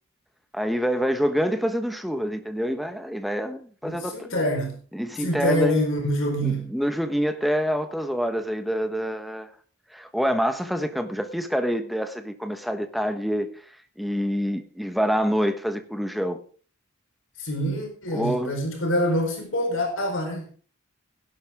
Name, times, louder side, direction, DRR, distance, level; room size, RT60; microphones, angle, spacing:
voice 1, 0.5-4.3 4.9-5.8 6.4-9.5 9.9-13.5 14.0-16.4 18.1-18.5, equal, ahead, 1.2 m, -26 dB
voice 2, 3.8-4.8 5.2-6.7 17.4-20.4, equal, 65° left, 4.4 m, -25 dB
17.0 x 11.0 x 3.6 m
head